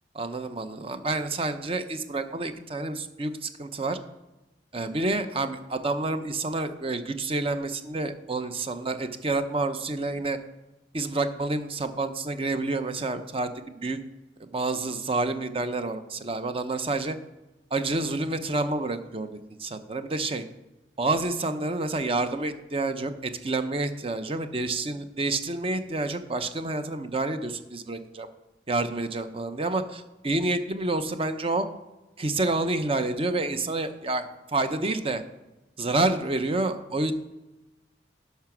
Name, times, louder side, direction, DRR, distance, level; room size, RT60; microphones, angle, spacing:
voice 1, 0.1-4.0 4.7-10.4 10.9-14.0 14.4-17.2 17.7-19.3 19.6-20.4 21.0-28.3 28.7-31.7 32.2-35.2 35.8-37.1, right 2 dB, 30° right, 9 dB, 0.7 m, -28 dB
11.0 x 5.7 x 6.0 m, 1.0 s
head